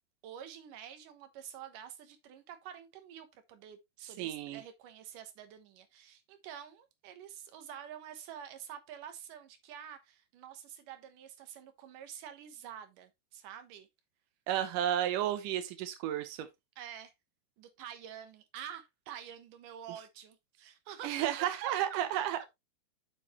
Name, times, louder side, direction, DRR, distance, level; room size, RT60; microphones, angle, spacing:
voice 1, 0.2-13.9 16.8-17.1 17.6-22.0, right 9 dB, 65° right, 2.3 m, -48 dB
voice 2, 4.2-4.6 14.5-16.5 21.0-22.6, right 11 dB, 80° right, 1.9 m, -32 dB
7.6 x 7.0 x 3.0 m
omnidirectional pair, 4.9 m